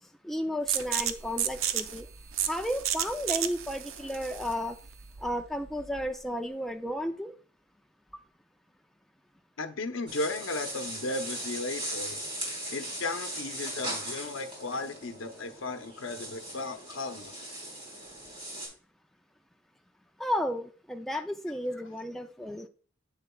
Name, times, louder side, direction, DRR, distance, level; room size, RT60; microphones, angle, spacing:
voice 1, 0.2-2.1 2.5-4.8 5.2-7.3 8.1-8.2 20.2-22.7, equal, ahead, 0.4 m, -33 dB
sound 1, 0.7-6.2, right 10 dB, 90° right, 0.6 m, -33 dB
voice 2, 9.6-12.2 12.7-17.4 21.1-21.2, left 2 dB, 80° left, 0.8 m, -35 dB
sound 2, 10.1-18.7, right 1 dB, 25° right, 3.4 m, -39 dB
7.8 x 6.8 x 2.3 m
head